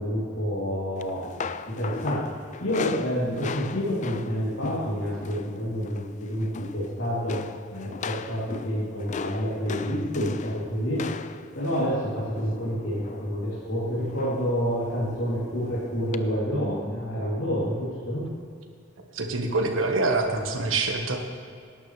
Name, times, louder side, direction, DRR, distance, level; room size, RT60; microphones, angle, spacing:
voice 1, 0.0-1.4 1.7-7.4 7.7-11.0 11.5-18.3, equal, 70° left, -8 dB, 3.2 m, -28 dB
sound 1, 1.0-5.5 5.8-6.1 6.4-6.9 7.3-13.3 14.2-14.5 14.9-15.1 16.1-16.2, left 5 dB, 40° left, 0.4 m, -37 dB
voice 2, 19.1-21.2, right 3 dB, 85° right, 3 dB, 1.5 m, -25 dB
18.0 x 11.5 x 3.4 m, 2.4 s
head